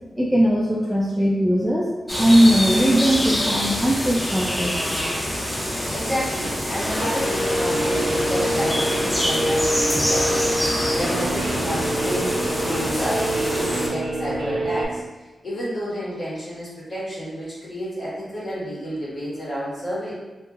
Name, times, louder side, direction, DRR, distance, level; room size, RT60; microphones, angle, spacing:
voice 1, 0.2-1.9 2.2-4.7, equal, 5° right, -4 dB, 0.4 m, -19 dB
sound 1, 2.1-13.9, equal, 20° left, 0.7 m, -26 dB
voice 2, 5.9-12.4 12.6-20.1, equal, 55° left, -8 dB, 1.4 m, -30 dB
sound 2, 6.6-13.9, equal, 40° left, 1.1 m, -31 dB
Guitar, 6.9-14.8, right 1 dB, 70° right, 0.5 m, -26 dB
2.8 x 2.7 x 2.3 m, 1.2 s
cardioid pair, 80°, 0 cm